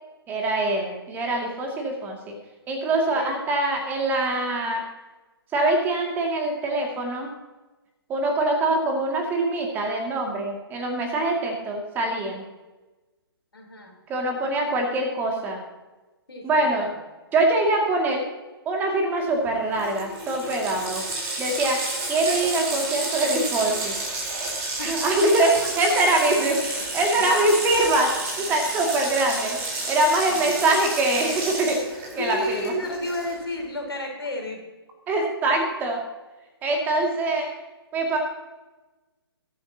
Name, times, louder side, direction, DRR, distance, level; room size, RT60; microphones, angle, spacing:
voice 1, 0.3-2.3 2.7-4.8 5.5-7.3 8.1-12.5 14.1-15.6 16.4-16.9 17.3-18.2 18.7-21.0 21.4-21.8 22.1-24.0 24.4-24.5 24.8-29.6 29.9-31.8 32.2-32.6 35.1-36.0 36.6-37.5 37.9-38.2, right 2 dB, 15° right, 1 dB, 2.4 m, -23 dB
voice 2, 13.5-13.9 16.3-16.9 24.6-25.1 25.8-25.9 27.2-27.3 32.1-34.6, left 1 dB, 70° left, 1 dB, 4.2 m, -32 dB
Water tap faucet, 19.5-19.6 19.8-33.5, right 2 dB, 30° right, 4.3 m, -31 dB
21.5 x 8.6 x 2.9 m, 1.2 s
figure-of-eight pair, 130°, 13 cm